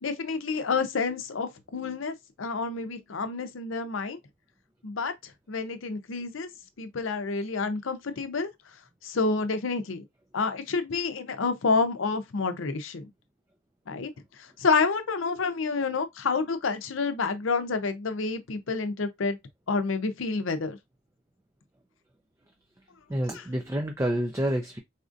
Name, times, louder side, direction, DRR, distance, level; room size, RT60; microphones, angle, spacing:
voice 1, 0.0-4.2 4.8-6.5 6.8-8.5 9.0-10.0 10.3-13.1 13.9-14.1 14.4-19.4 19.7-20.8 23.3-23.4, left 4 dB, 85° left, 0.6 m, -29 dB
voice 2, 23.1-24.8, right 1 dB, 15° right, 0.4 m, -28 dB
4.1 x 2.5 x 2.5 m
head